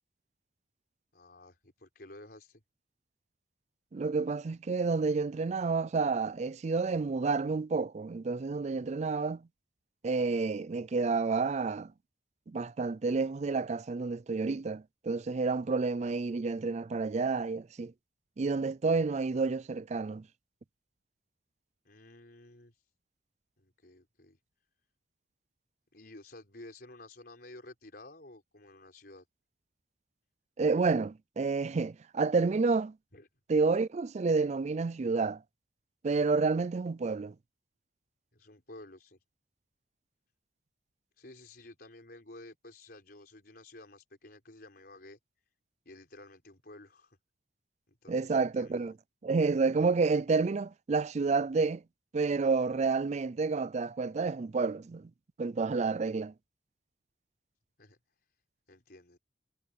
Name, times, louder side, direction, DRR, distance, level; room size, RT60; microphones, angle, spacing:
voice 1, 1.1-2.6 21.8-22.9 23.6-24.4 25.9-29.2 33.1-33.3 38.3-39.2 41.2-45.2 45.8-47.2 47.9-49.0 57.8-58.0 58.7-59.2, left 2 dB, 55° left, 4.9 m, -52 dB
voice 2, 3.9-9.4 10.0-11.9 12.5-17.9 18.4-20.2 30.6-32.9 33.5-35.4 36.0-37.3 48.1-48.9 49.2-51.8 52.1-55.1 55.4-56.3, right 4 dB, 35° right, 0.4 m, -29 dB
head